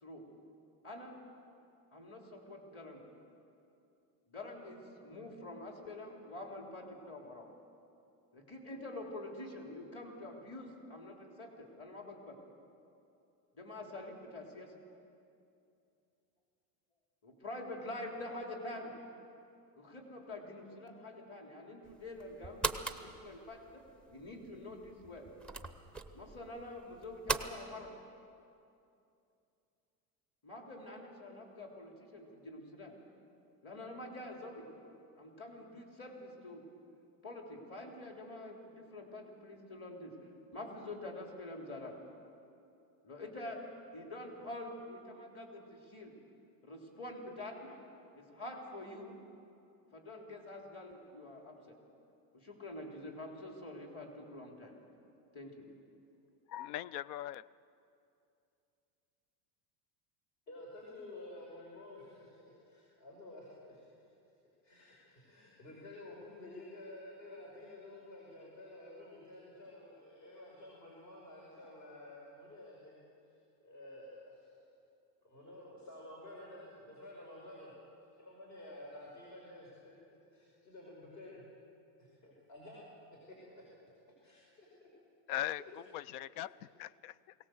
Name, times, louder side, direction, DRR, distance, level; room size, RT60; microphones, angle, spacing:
voice 1, 0.8-1.2 1.9-3.1 4.3-7.5 8.3-12.4 13.5-14.7 17.2-18.9 19.7-25.3 26.1-28.0 30.4-33.0 33.6-34.7 35.2-36.6 37.2-40.2 40.5-42.0 43.0-43.6 43.9-46.2 46.6-47.8 48.1-49.2 49.9-51.8 52.3-54.7 55.3-55.7, left 1 dB, 30° left, 1 dB, 3.4 m, -46 dB
sound 1, 21.9-27.5, right 3 dB, ahead, 0.6 m, -41 dB
voice 2, 56.5-57.5 85.3-85.6 85.9-87.3, left 12 dB, 70° left, 21 dB, 0.6 m, -40 dB
voice 3, 60.5-64.1 64.6-73.0 73.3-74.5 75.2-77.7 78.2-81.5 82.0-82.9 83.3-83.9 84.2-84.9 85.3-85.7, left 1 dB, 50° left, -3 dB, 5.4 m, -52 dB
21.5 x 18.0 x 7.8 m, 2.6 s
supercardioid pair, 145°, 46 cm